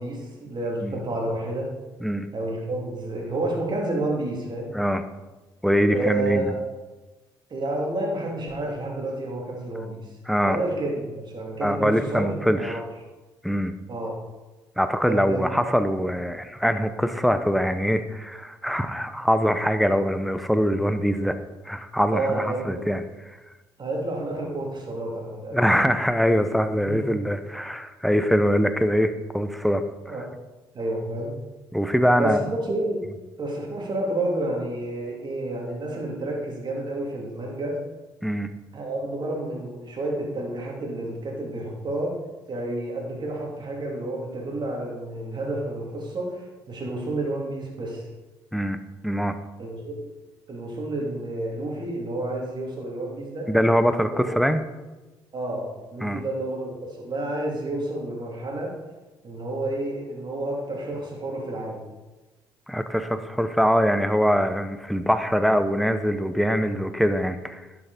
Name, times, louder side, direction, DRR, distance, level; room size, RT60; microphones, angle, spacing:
voice 1, 0.0-1.7 2.3-4.7 5.9-6.6 7.5-10.0 10.4-12.8 13.9-14.2 15.0-15.7 22.1-22.9 23.8-25.6 26.9-27.1 30.0-30.3 30.7-31.3 32.2-33.0 33.4-37.8 38.7-42.2 42.5-48.1 49.6-50.0 50.5-53.5 53.9-54.3 55.3-58.8 59.2-61.8, right 1 dB, 45° right, -1 dB, 2.8 m, -30 dB
voice 2, 5.6-6.5 10.3-10.6 11.6-12.8 13.4-13.8 14.8-21.4 21.6-23.0 25.5-30.2 31.7-32.4 38.2-38.5 48.5-49.4 53.5-54.6 56.0-56.2 62.7-67.6, equal, ahead, 10 dB, 0.8 m, -23 dB
11.0 x 6.1 x 4.1 m, 1.2 s
hypercardioid pair, 55°, 10 cm